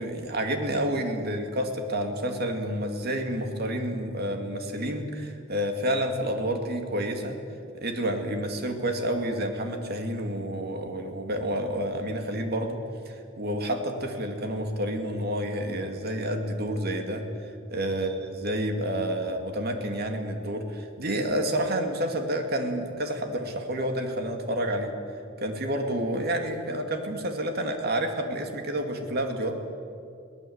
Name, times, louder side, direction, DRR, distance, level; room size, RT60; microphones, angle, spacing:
voice 1, 0.0-7.4 7.7-12.8 13.1-17.2 17.7-24.9 25.4-29.5, right 1 dB, 50° right, 4 dB, 2.5 m, -29 dB
22.5 x 18.0 x 8.1 m, 2.5 s
head